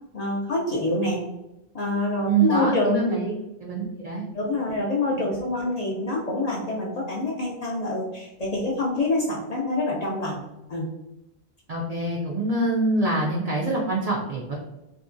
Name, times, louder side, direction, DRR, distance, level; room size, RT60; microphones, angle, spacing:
voice 1, 0.1-1.2 1.7-3.2 4.3-10.4 10.7-10.9, left 2 dB, 55° left, -3 dB, 0.5 m, -26 dB
voice 2, 2.3-3.3 3.6-4.2 11.7-14.6, right 3 dB, 55° right, -3 dB, 0.4 m, -25 dB
2.8 x 2.2 x 2.5 m, 0.95 s
omnidirectional pair, 1.1 m